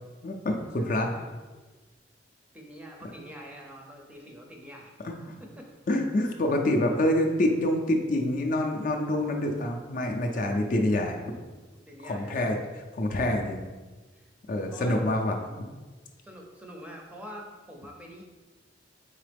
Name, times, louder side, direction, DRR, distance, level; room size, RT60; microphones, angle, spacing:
voice 1, 0.2-1.1 5.0-5.4 5.9-11.2 12.0-13.6 14.5-15.4, left 1 dB, 45° left, 2 dB, 0.4 m, -26 dB
voice 2, 0.8-1.3 2.5-4.9 5.4-5.7 9.4-9.7 10.9-12.3 14.1-14.3 14.7-15.1 15.4-15.5 16.2-18.2, equal, 5° right, 0 dB, 0.5 m, -46 dB
4.0 x 3.7 x 3.3 m, 1.3 s
head